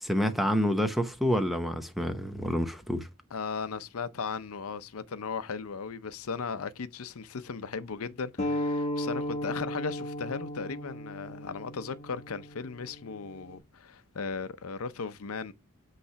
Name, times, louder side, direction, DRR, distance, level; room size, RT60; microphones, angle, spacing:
voice 1, 0.0-3.1, equal, ahead, 0.7 m, -28 dB
voice 2, 3.3-15.5, left 5 dB, 75° left, 0.6 m, -37 dB
sound 1, 8.4-13.6, left 1 dB, 30° left, 1.3 m, -35 dB
8.3 x 3.2 x 5.7 m
head